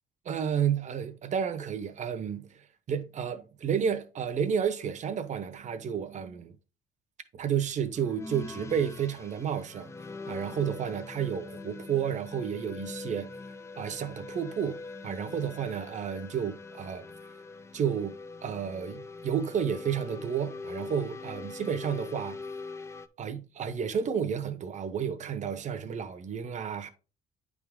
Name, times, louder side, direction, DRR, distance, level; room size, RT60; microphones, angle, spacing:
voice 1, 0.2-6.6 7.3-9.9 10.3-13.3 13.8-17.1 17.7-18.2 18.4-22.4 23.2-26.9, right 8 dB, 45° right, 0.9 m, -31 dB
sound 1, 8.0-23.1, left 3 dB, 15° left, 0.5 m, -43 dB
9.3 x 3.7 x 3.6 m
cardioid pair, 110°, 17 cm